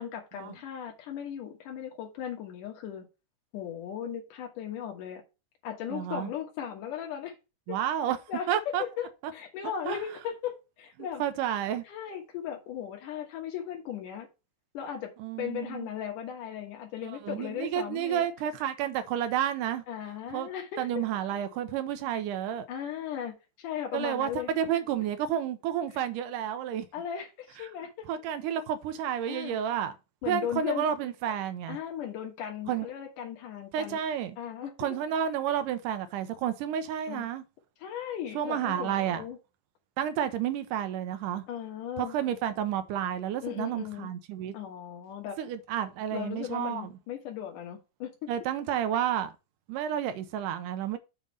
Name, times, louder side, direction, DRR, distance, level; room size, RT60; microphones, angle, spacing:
voice 1, 0.0-3.1 3.5-5.2 5.6-7.4 7.7-7.8 8.3-11.2 11.8-14.3 14.7-15.1 15.4-18.3 19.9-21.1 22.7-24.8 26.9-28.1 29.3-29.6 30.2-30.9 31.7-34.0 34.4-34.7 37.1-37.3 37.8-39.4 41.5-42.2 43.4-44.1 44.5-45.4 46.1-48.3, left 9 dB, 80° left, 2.9 m, -37 dB
voice 2, 5.9-6.3 7.7-8.2 8.5-8.8 9.9-10.0 11.2-11.8 15.2-15.9 17.0-19.8 20.3-20.5 20.8-22.7 23.9-26.9 28.1-29.9 30.3-31.8 32.7-32.9 33.7-34.4 34.8-37.4 38.3-39.2 40.0-41.5 42.0-44.5 45.4-46.9 48.3-49.3 49.7-51.0, right 10 dB, 85° right, 2.3 m, -30 dB
7.3 x 3.6 x 6.3 m
omnidirectional pair, 3.7 m